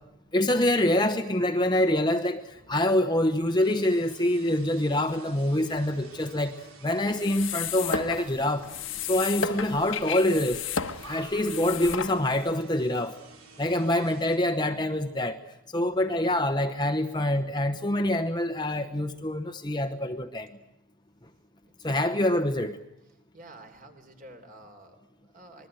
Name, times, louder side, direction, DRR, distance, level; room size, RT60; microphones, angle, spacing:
voice 1, 0.3-8.7 9.1-10.7 11.0-13.2 13.6-15.4 15.7-20.5 21.8-22.8, left 1 dB, 20° left, 7 dB, 1.0 m, -26 dB
voice 2, 2.4-2.9 5.5-6.2 8.5-9.1 13.6-14.0 15.9-16.2 19.0-19.7 21.8-22.0 23.3-25.7, right 1 dB, 40° right, 6 dB, 3.7 m, -53 dB
sound 1, 3.5-14.4, right 3 dB, 90° right, 3.9 m, -50 dB
sound 2, 7.1-12.5, left 6 dB, 65° left, 1.3 m, -34 dB
26.0 x 21.0 x 9.1 m, 0.84 s
head